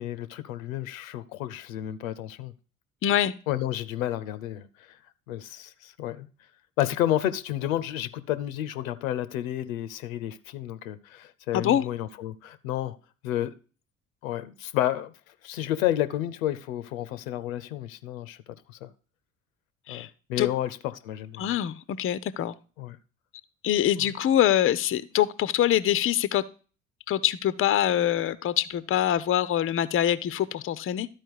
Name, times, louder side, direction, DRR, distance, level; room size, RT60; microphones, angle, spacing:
voice 1, 0.0-2.5 3.5-4.7 5.3-6.3 6.8-13.0 13.2-13.5 14.2-15.1 15.4-18.4 18.7-18.9 19.9-21.5 22.8-23.0 24.0-24.1, left 12 dB, 75° left, 0.7 m, -31 dB
voice 2, 3.0-3.3 11.5-11.8 19.9-20.1 20.4-20.5 21.4-22.5 23.6-26.4 27.1-31.1, left 11 dB, 30° left, 0.6 m, -24 dB
12.0 x 4.4 x 4.6 m
figure-of-eight pair, 55°, 41 cm